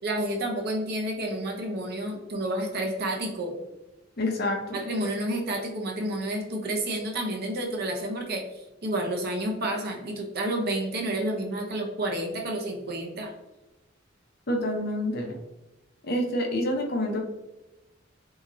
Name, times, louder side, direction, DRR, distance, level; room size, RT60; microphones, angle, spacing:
voice 1, 0.0-3.6 4.7-13.3, right 1 dB, 50° right, 1 dB, 0.7 m, -30 dB
voice 2, 4.2-4.8 14.5-15.3 16.0-17.2, left 1 dB, 50° left, 2 dB, 0.7 m, -27 dB
4.0 x 2.8 x 2.6 m, 1.0 s
head